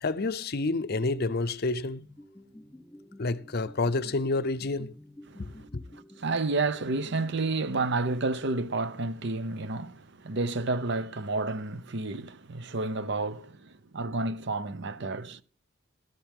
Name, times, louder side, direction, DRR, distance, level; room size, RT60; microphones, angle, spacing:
voice 1, 0.0-2.1 3.2-4.9 5.4-5.5, left 3 dB, 50° left, 0.7 m, -29 dB
sound 1, 2.0-8.7, left 1 dB, 5° left, 3.6 m, -51 dB
voice 2, 5.3-15.4, right 3 dB, 60° right, 0.8 m, -31 dB
13.5 x 13.0 x 3.7 m
head